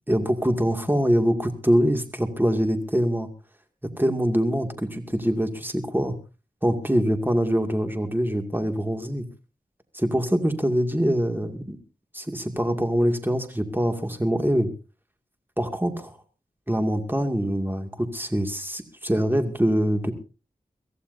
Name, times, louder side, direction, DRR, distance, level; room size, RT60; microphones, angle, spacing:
voice 1, 0.1-3.3 4.0-6.1 6.6-9.2 9.9-11.8 12.1-14.7 15.6-16.1 16.7-20.1, equal, 15° right, 5 dB, 2.4 m, -24 dB
23.5 x 15.0 x 2.7 m, 0.32 s
wide cardioid pair, 45°, 16 cm